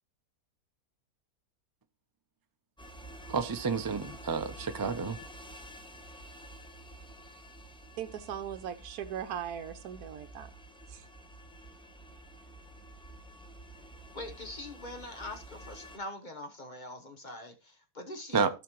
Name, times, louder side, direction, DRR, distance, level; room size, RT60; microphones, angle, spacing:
sound 1, 2.8-16.0, right 1 dB, 5° left, 0.7 m, -49 dB
voice 1, 3.3-5.2 18.3-18.5, right 5 dB, 35° right, 0.3 m, -30 dB
voice 2, 8.0-10.5 10.9-11.0, right 9 dB, 75° right, 1.2 m, -39 dB
voice 3, 14.1-18.5, left 1 dB, 35° left, 1.1 m, -43 dB
16.0 x 5.7 x 3.0 m
omnidirectional pair, 1.6 m